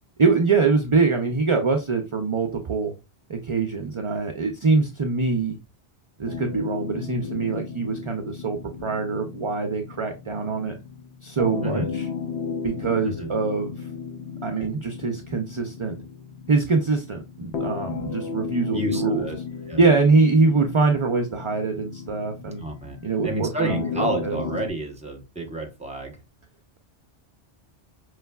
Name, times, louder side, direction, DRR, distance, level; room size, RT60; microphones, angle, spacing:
voice 1, 0.2-2.9 3.3-5.6 6.2-10.7 11.2-12.1 12.6-13.9 14.4-16.0 16.5-19.3 19.8-22.6 23.0-24.4, right 4 dB, 40° right, 5 dB, 0.4 m, -23 dB
sound 1, 6.3-24.7, left 5 dB, 85° left, 1.0 m, -35 dB
voice 2, 18.7-19.4 19.7-19.8 22.6-23.0 23.2-26.2, right 1 dB, 5° right, 2 dB, 0.8 m, -30 dB
5.4 x 3.1 x 2.3 m, 0.27 s
omnidirectional pair, 1.1 m